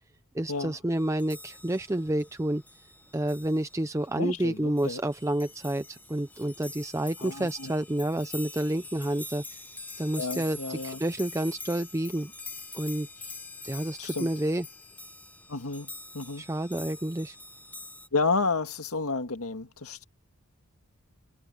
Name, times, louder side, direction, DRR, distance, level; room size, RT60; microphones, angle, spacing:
voice 1, 0.3-2.6 3.1-9.6 10.0-12.3 12.7-13.1 13.6-14.7 16.4-17.4, right 1 dB, 15° right, 0.5 m, -29 dB
sound 1, 0.9-18.1, left 2 dB, 5° left, 1.2 m, -45 dB
voice 2, 4.2-5.0 7.2-7.7 10.2-11.0 14.0-14.3 15.5-16.5 18.1-20.1, left 3 dB, 80° left, 1.9 m, -31 dB
head